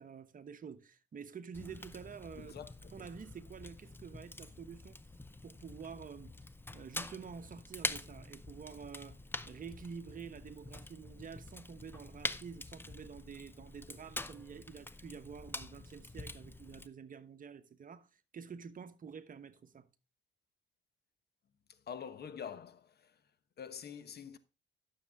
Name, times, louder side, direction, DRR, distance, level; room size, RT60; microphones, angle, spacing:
voice 1, 0.0-2.5 2.9-5.0 5.4-6.3 6.7-9.2 9.4-19.9, right 6 dB, 45° right, 1.1 m, -48 dB
Fire, 1.5-16.9, left 2 dB, 10° left, 0.7 m, -45 dB
voice 2, 2.4-2.7 21.9-23.1 23.6-24.4, left 7 dB, 55° left, 1.1 m, -45 dB
12.0 x 6.9 x 3.5 m
cardioid pair, 90°, 20 cm